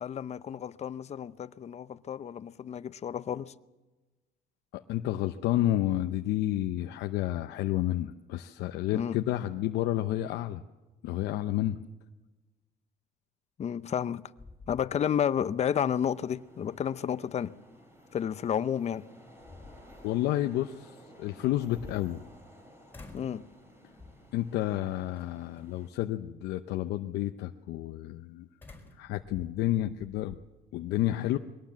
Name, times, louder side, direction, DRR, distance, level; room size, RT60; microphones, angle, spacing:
voice 1, 0.0-3.5 8.9-9.2 13.6-14.3 14.7-17.5 18.1-19.0 23.1-23.4, left 8 dB, 40° left, 0.7 m, -31 dB
voice 2, 4.7-10.6 11.0-11.8 20.0-20.9 21.2-22.3 24.3-28.5 29.0-30.4 30.7-31.4, left 14 dB, 85° left, 0.8 m, -30 dB
sound 1, 14.4-15.4 15.8-15.9 18.5-18.6 19.2-20.1 21.4-22.6 22.9-23.4 24.0-24.4 25.1-25.6 28.6-30.4, left 3 dB, 10° left, 4.5 m, -50 dB
sound 2, 15.6-25.9, equal, 15° right, 5.2 m, -56 dB
22.5 x 18.0 x 7.5 m
cardioid pair, 110°, 17 cm